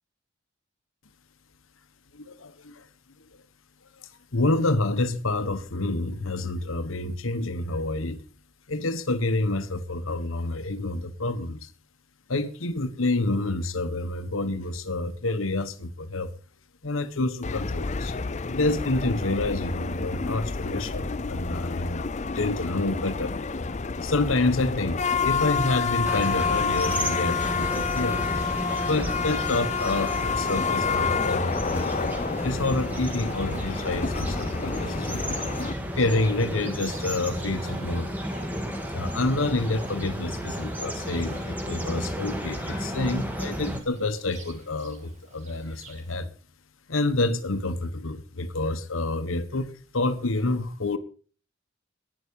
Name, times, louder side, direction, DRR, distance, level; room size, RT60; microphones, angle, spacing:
voice 1, 2.1-2.9 4.0-8.2 8.7-11.7 12.3-16.3 16.8-22.1 22.3-23.3 24.0-28.2 28.8-32.1 32.4-35.2 36.0-38.1 38.9-46.3 46.9-51.0, left 2 dB, 90° left, 1.3 m, -28 dB
sound 1, 17.4-35.7, left 5 dB, 35° left, 0.6 m, -29 dB
sound 2, 26.0-43.8, equal, 10° right, 1.8 m, -33 dB
Livestock farm animals working animals, 28.2-46.1, right 3 dB, 35° right, 2.4 m, -48 dB
11.5 x 10.0 x 5.4 m
head